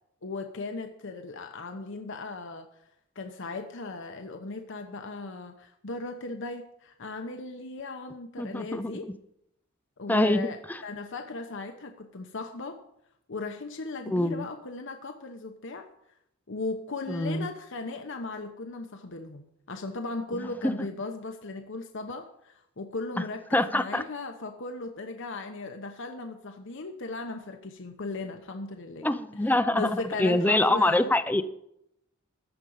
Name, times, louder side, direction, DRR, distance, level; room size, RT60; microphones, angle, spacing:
voice 1, 0.2-2.7 3.1-9.1 10.0-12.8 13.3-15.9 16.5-29.1 29.7-31.1, left 3 dB, 65° left, 5 dB, 1.0 m, -37 dB
voice 2, 8.4-8.9 10.1-10.8 14.1-14.5 17.1-17.5 20.3-20.7 23.2-23.3 23.5-24.0 29.0-31.4, left 1 dB, 10° left, 12 dB, 0.6 m, -25 dB
14.0 x 5.2 x 8.6 m, 0.76 s
head